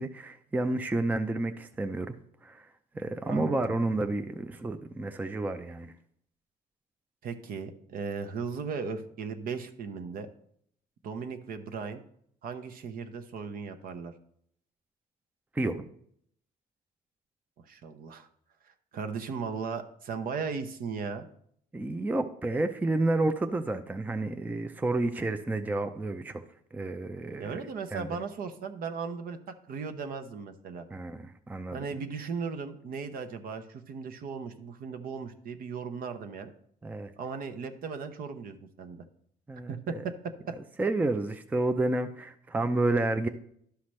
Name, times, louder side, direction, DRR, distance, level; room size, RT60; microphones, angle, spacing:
voice 1, 0.0-2.2 2.4-2.7 3.0-5.9 15.5-15.9 21.7-26.4 26.7-27.6 27.9-28.2 30.9-31.8 36.8-37.1 39.5-39.7 40.8-43.3, right 2 dB, 10° right, 8 dB, 0.4 m, -30 dB
voice 2, 3.3-3.8 7.2-10.3 11.0-12.0 12.4-14.1 17.6-18.3 18.7-21.2 27.4-29.4 29.7-30.8 31.7-36.5 37.2-39.0 39.7-40.1 40.5-40.6, right 5 dB, 60° right, 9 dB, 0.9 m, -37 dB
11.5 x 5.8 x 3.2 m, 0.67 s
cardioid pair, 110°, 17 cm